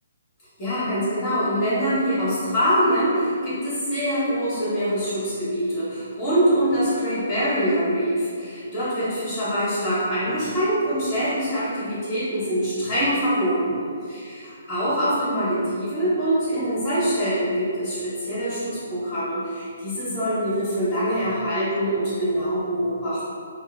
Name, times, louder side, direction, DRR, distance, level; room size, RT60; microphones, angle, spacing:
voice 1, 0.6-13.8 14.7-23.2, equal, 25° left, -12 dB, 1.0 m, -24 dB
2.7 x 2.1 x 2.3 m, 2.3 s
figure-of-eight pair, 135°, 0 cm